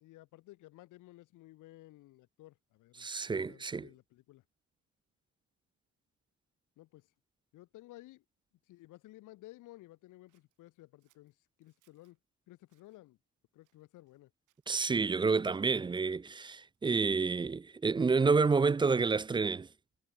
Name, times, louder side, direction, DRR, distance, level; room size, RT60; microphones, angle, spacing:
voice 1, 0.0-3.1 3.5-4.4 6.8-7.1 7.5-8.2 8.6-12.2 12.5-13.2 13.5-14.3, left 17 dB, 85° left, 1.0 m, -55 dB
voice 2, 3.0-3.9 14.7-19.7, right 4 dB, 15° right, 0.3 m, -29 dB
Scissors, 10.3-12.2 12.6-13.0 13.6-14.2 14.5-15.3 15.9-17.5, right 15 dB, 90° right, 8.0 m, -79 dB
cardioid pair, 90°, 30 cm